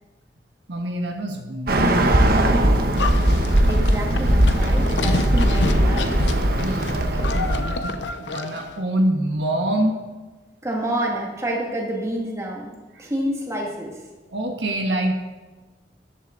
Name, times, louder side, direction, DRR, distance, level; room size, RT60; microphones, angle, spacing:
voice 1, 0.7-2.9 6.6-10.0 12.9-13.1 14.3-15.1, right 1 dB, 75° right, 3 dB, 1.4 m, -26 dB
Bird, 1.7-7.8, right 1 dB, 55° right, 1.2 m, -19 dB
Livestock farm animals working animals, 3.0-8.7, left 3 dB, 75° left, 0.8 m, -29 dB
voice 2, 3.7-6.2 10.6-12.7 13.0-14.0, right 1 dB, 15° right, -1 dB, 2.2 m, -28 dB
14.0 x 11.0 x 3.9 m, 1.2 s
head